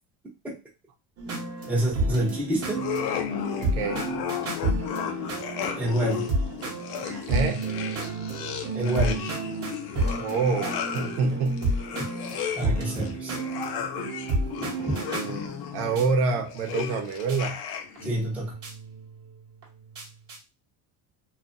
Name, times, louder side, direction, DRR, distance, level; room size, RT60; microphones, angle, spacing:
sound 1, 1.2-16.1 17.0-17.1 17.3-17.4 18.0-20.4, right 2 dB, 35° right, 0.9 m, -31 dB
voice 1, 1.7-2.8 5.8-6.3 8.7-9.2 12.6-13.4 18.0-18.5, right 1 dB, 5° right, -3 dB, 0.6 m, -27 dB
sound 2, 2.7-18.1, left 9 dB, 55° left, 0.6 m, -34 dB
voice 2, 3.7-4.1 7.3-7.7 10.1-11.7 14.8-17.6, right 4 dB, 65° right, 3 dB, 0.8 m, -27 dB
2.6 x 2.5 x 2.5 m, 0.28 s
cardioid pair, 135°, 42 cm